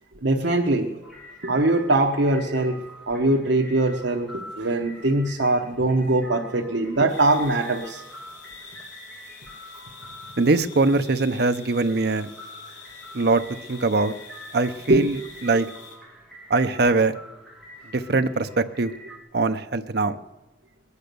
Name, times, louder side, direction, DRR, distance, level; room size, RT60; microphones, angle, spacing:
voice 1, 0.2-0.9 1.4-2.8 3.1-8.0 14.9-15.0, right 2 dB, 75° right, 1 dB, 1.1 m, -22 dB
sound 1, 1.0-19.2, equal, ahead, 2.8 m, -45 dB
sound 2, 7.1-16.0, left 5 dB, 75° left, 5.1 m, -46 dB
voice 2, 10.4-12.3 13.1-13.4 13.7-14.1 14.5-15.7 16.5-17.1 17.9-18.9 19.3-20.2, right 3 dB, 55° right, 9 dB, 0.7 m, -22 dB
21.5 x 9.9 x 6.8 m, 1.1 s
head